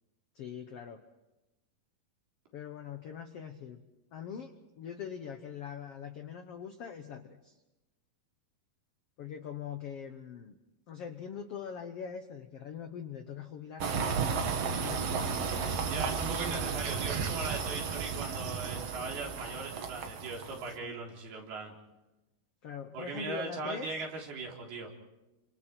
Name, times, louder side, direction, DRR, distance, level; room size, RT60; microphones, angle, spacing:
voice 1, 0.3-1.0 2.5-3.8 4.1-7.6 9.2-10.6 10.9-14.1 14.7-15.9 16.2-16.6 20.8-21.0 22.6-23.9, left 7 dB, 80° left, 7 dB, 1.3 m, -43 dB
sound 1, 13.8-20.7, right 6 dB, 55° right, 1.9 m, -33 dB
voice 2, 15.9-21.7 22.9-24.9, right 3 dB, 80° right, 0 dB, 5.6 m, -39 dB
29.5 x 26.0 x 4.5 m, 1.0 s
omnidirectional pair, 4.4 m